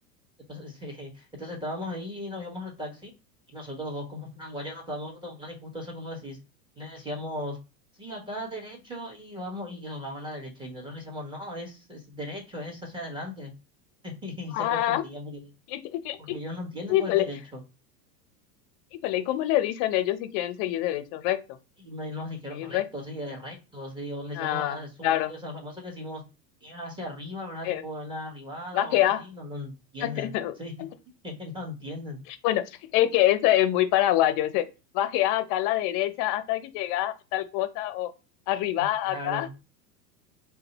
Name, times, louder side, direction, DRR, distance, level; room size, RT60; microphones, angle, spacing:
voice 1, 0.5-3.1 3.5-6.4 6.8-7.6 8.0-13.5 14.0-15.5 16.2-17.6 21.8-26.2 26.6-30.3 30.6-30.9 31.2-32.2 38.8-39.5, left 1 dB, 10° right, 1.2 m, -37 dB
voice 2, 14.5-15.0 15.7-16.4 16.9-17.2 18.9-21.4 22.5-22.9 24.4-25.3 27.6-27.8 28.7-29.2 30.0-30.5 30.8-30.9 32.4-32.6 32.9-34.7 34.9-38.1 38.5-39.5, left 13 dB, 45° left, 0.6 m, -25 dB
2.6 x 2.2 x 4.0 m
hypercardioid pair, 105°, 49 cm